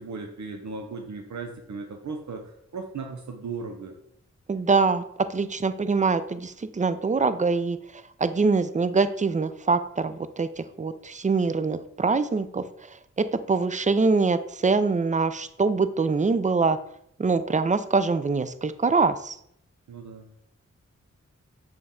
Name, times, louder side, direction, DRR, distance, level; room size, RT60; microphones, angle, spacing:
voice 1, 0.0-4.0 19.9-20.3, right 4 dB, 70° right, 3 dB, 0.6 m, -37 dB
voice 2, 4.5-16.8 17.2-19.4, right 4 dB, 25° right, 12 dB, 0.4 m, -24 dB
6.4 x 2.3 x 3.6 m, 0.70 s
cardioid pair, 40°, 29 cm